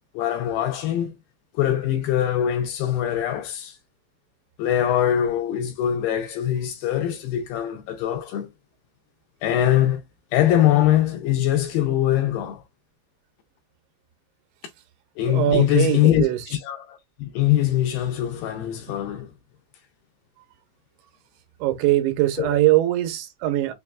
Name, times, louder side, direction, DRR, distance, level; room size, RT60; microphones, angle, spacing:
voice 1, 0.2-1.2 1.5-3.8 4.6-8.5 9.4-10.0 10.3-12.6 15.2-19.3 22.4-22.6, left 11 dB, 80° left, 2.4 m, -22 dB
voice 2, 15.3-16.4 21.6-23.7, right 15 dB, 85° right, 3.0 m, -21 dB
6.4 x 2.6 x 2.2 m
omnidirectional pair, 5.1 m